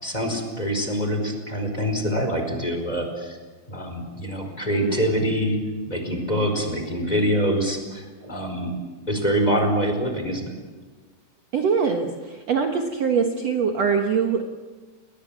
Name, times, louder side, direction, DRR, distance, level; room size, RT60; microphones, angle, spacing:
voice 1, 0.0-3.4 3.7-5.6 5.9-8.7 9.1-10.5, equal, 10° left, 4 dB, 4.4 m, -25 dB
voice 2, 11.5-14.4, right 6 dB, 65° right, 3 dB, 1.6 m, -23 dB
29.5 x 22.0 x 7.4 m, 1.3 s
omnidirectional pair, 5.3 m